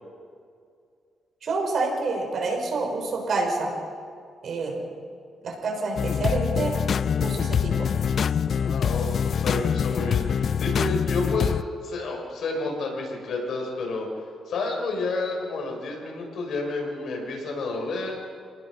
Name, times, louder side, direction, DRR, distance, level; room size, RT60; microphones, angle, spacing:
voice 1, 1.4-3.7 4.4-4.8 5.4-6.8 7.2-7.9, right 3 dB, 55° right, 2 dB, 5.7 m, -28 dB
sound 1, 6.0-11.6, left 7 dB, 50° left, 0.5 m, -25 dB
voice 2, 8.5-14.1 14.5-18.1, left 3 dB, 65° left, 0 dB, 6.4 m, -30 dB
27.0 x 19.5 x 6.5 m, 2.3 s
cardioid pair, 130°, 0 cm